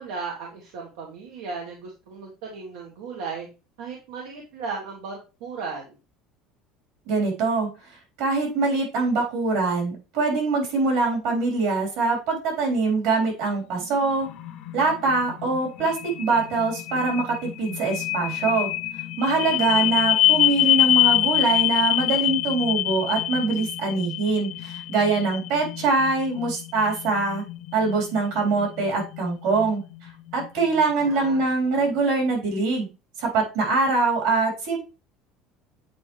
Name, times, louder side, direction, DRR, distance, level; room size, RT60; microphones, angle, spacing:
voice 1, 0.0-3.5 3.8-6.0 19.4-19.8 30.9-31.4, right 4 dB, 85° right, 0 dB, 1.4 m, -36 dB
voice 2, 7.1-7.7 8.2-14.3 14.7-18.7 19.2-27.4 27.7-32.9 33.2-34.8, right 3 dB, 65° right, 0 dB, 3.8 m, -23 dB
sound 1, 13.4-31.4, left 14 dB, 50° left, 0.7 m, -26 dB
8.3 x 4.5 x 3.2 m, 0.30 s
cardioid pair, 170°, 0 cm